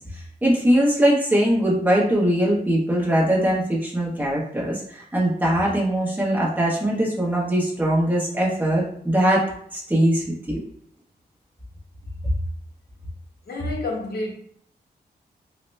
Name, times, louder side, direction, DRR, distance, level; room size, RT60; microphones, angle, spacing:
voice 1, 0.4-9.4 9.7-10.6, right 1 dB, 10° right, -5 dB, 1.0 m, -21 dB
voice 2, 13.5-14.3, left 2 dB, 70° left, 0 dB, 0.9 m, -28 dB
4.0 x 2.2 x 3.1 m, 0.65 s
wide cardioid pair, 120°, 17 cm